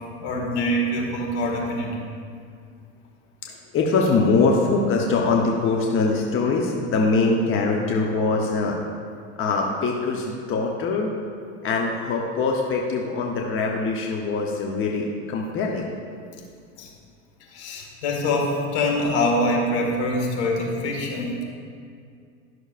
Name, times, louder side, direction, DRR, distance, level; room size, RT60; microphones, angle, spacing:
voice 1, 0.2-2.0 16.8-16.9 17.5-21.4, left 1 dB, 65° left, 0 dB, 1.9 m, -24 dB
voice 2, 3.4-8.8 9.4-11.1 11.6-15.9, left 3 dB, 35° left, 0 dB, 0.9 m, -23 dB
12.5 x 6.2 x 2.5 m, 2.3 s
hypercardioid pair, 95°, 37 cm